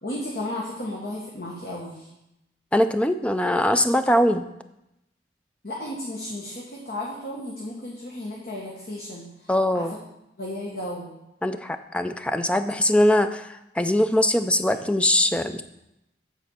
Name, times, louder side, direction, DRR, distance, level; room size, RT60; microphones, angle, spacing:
voice 1, 0.0-2.1 5.6-9.5 9.7-10.0 10.4-11.1, left 1 dB, 55° left, -3 dB, 1.3 m, -34 dB
voice 2, 2.7-4.4 9.5-9.9 11.4-15.6, left 1 dB, 5° left, 9 dB, 0.3 m, -22 dB
9.0 x 4.2 x 6.7 m, 0.87 s
head